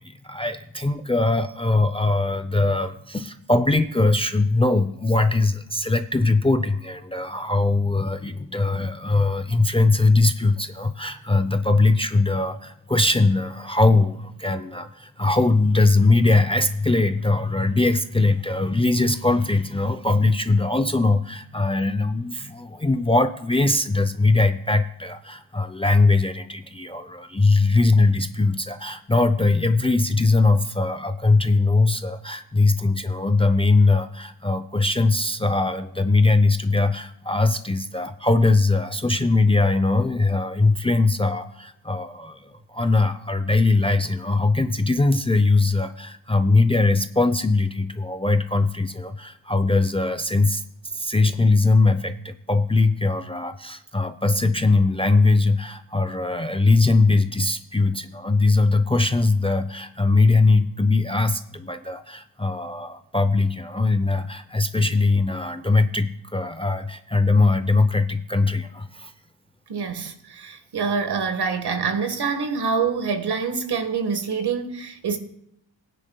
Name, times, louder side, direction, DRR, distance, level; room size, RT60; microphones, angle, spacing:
voice 1, 0.0-50.6 50.9-69.1, left 3 dB, 10° left, 0.6 m, -21 dB
voice 2, 69.7-75.2, right 5 dB, 55° right, 1.7 m, -26 dB
18.5 x 10.0 x 2.3 m
cardioid pair, 65°, 47 cm